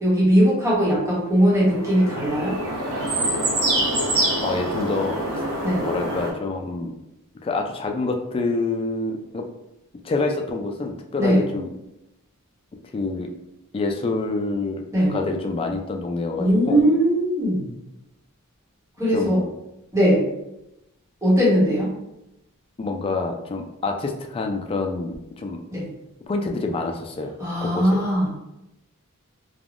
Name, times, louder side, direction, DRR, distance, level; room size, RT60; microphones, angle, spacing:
voice 1, 0.0-2.5 5.6-5.8 11.2-11.4 14.9-15.2 16.4-17.7 19.0-19.4 19.9-20.2 21.2-21.9 25.7-25.9 27.4-28.3, equal, 15° right, -7 dB, 1.0 m, -19 dB
sound 1, 1.5-6.3, right 1 dB, 65° right, 0.8 m, -25 dB
voice 2, 4.4-5.2 5.8-6.9 7.4-9.5 10.0-11.7 12.9-13.3 13.7-16.8 19.1-19.5 22.8-25.6 26.3-27.3 27.6-28.0, left 3 dB, 25° left, 3 dB, 0.3 m, -27 dB
3.3 x 2.2 x 2.4 m, 0.89 s
head